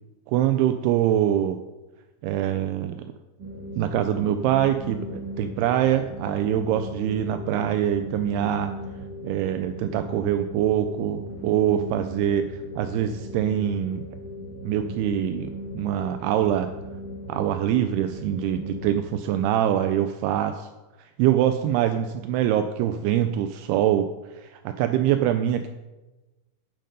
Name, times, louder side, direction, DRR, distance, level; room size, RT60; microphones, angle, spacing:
voice 1, 0.3-1.6 2.2-3.1 3.8-8.7 9.2-14.0 14.6-16.7 17.3-20.7 21.0-24.1 24.3-25.7, right 11 dB, 85° right, 8 dB, 2.5 m, -24 dB
sound 1, 3.4-19.0, equal, 60° right, 1.1 m, -37 dB
9.2 x 7.8 x 5.3 m, 1.1 s
omnidirectional pair, 4.7 m